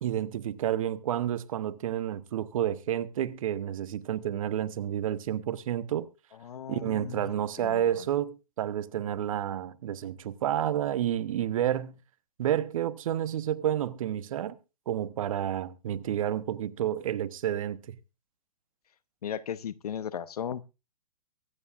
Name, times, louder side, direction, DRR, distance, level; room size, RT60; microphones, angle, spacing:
voice 1, 0.0-6.1 6.7-12.0 12.4-14.6 14.9-18.0, right 11 dB, 60° right, 1.0 m, -30 dB
voice 2, 6.4-7.3 7.6-8.0 19.2-20.6, left 8 dB, 75° left, 0.9 m, -36 dB
23.5 x 9.6 x 2.5 m
hypercardioid pair, 130°, 20 cm